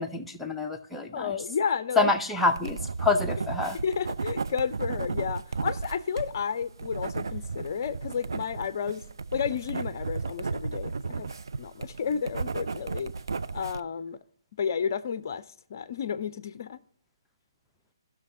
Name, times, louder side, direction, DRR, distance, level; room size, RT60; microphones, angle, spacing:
voice 1, 0.0-1.4 2.0-3.8, left 3 dB, ahead, 0.6 m, -27 dB
voice 2, 1.1-2.1 3.8-9.0 9.3-11.3 11.6-13.1 13.5-14.2 14.6-16.8, left 7 dB, 45° left, 0.5 m, -31 dB
sound 1, 2.5-13.8, right 4 dB, 65° right, 0.4 m, -34 dB
16.5 x 6.2 x 2.8 m
figure-of-eight pair, 135°, 2 cm